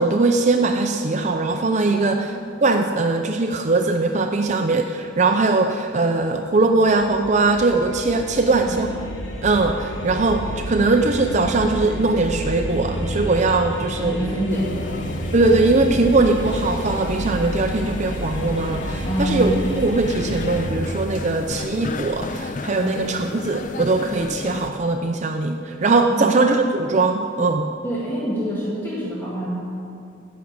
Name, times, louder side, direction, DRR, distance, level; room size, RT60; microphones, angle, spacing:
voice 1, 0.0-2.3 2.6-8.9 9.4-14.2 15.3-27.7, right 3 dB, 35° right, 4 dB, 0.5 m, -20 dB
voice 2, 1.9-2.4 8.3-8.7 14.0-15.3 19.0-19.5 22.8-23.0 26.1-26.5 27.8-29.7, right 1 dB, 10° left, -7 dB, 1.9 m, -27 dB
sound 1, 6.8-20.7, equal, 65° left, 1.7 m, -30 dB
sound 2, 14.5-24.7, left 3 dB, 40° left, 0.5 m, -33 dB
15.0 x 6.2 x 8.7 m, 2.5 s
head